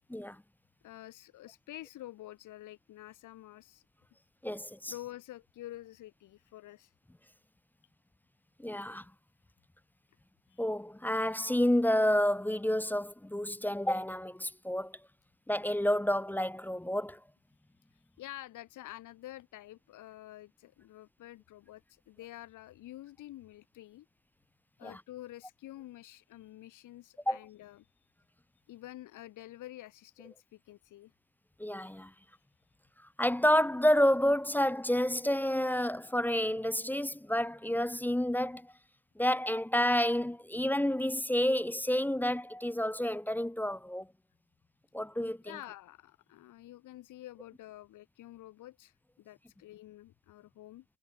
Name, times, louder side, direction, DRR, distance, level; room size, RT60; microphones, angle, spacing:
voice 1, 0.8-3.8 4.9-6.9 10.5-10.7 17.9-24.1 24.8-27.9 28.7-31.1 32.3-32.4 45.4-50.8, left 15 dB, 85° left, 3.7 m, -49 dB
voice 2, 4.4-4.9 8.6-9.0 10.6-14.9 15.5-17.2 24.8-25.0 27.3-27.4 31.6-32.1 33.2-38.7 39.2-44.1 44.9-45.4, left 1 dB, 5° left, 0.5 m, -29 dB
cardioid pair, 90°, 30 cm